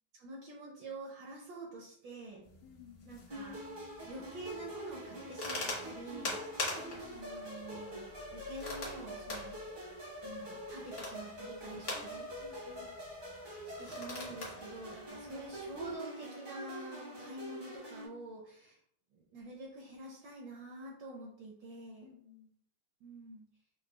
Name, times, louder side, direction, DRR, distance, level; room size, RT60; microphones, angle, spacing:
voice 1, 0.1-2.4 3.0-3.7 4.0-6.4 7.1-9.6 10.2-12.3 13.6-18.8 19.1-22.1 23.0-23.5, right 2 dB, 75° right, -1 dB, 1.1 m, -47 dB
sound 1, 2.4-16.0, left 2 dB, 55° left, 0.6 m, -45 dB
voice 2, 2.6-3.2 6.8-7.3 11.9-13.0 16.9-17.3 22.0-22.5, left 8 dB, 80° left, 2 dB, 1.5 m, -57 dB
sound 2, 3.3-18.1, equal, 50° right, 0.5 m, -45 dB
4.8 x 2.2 x 2.3 m, 0.70 s
omnidirectional pair, 2.4 m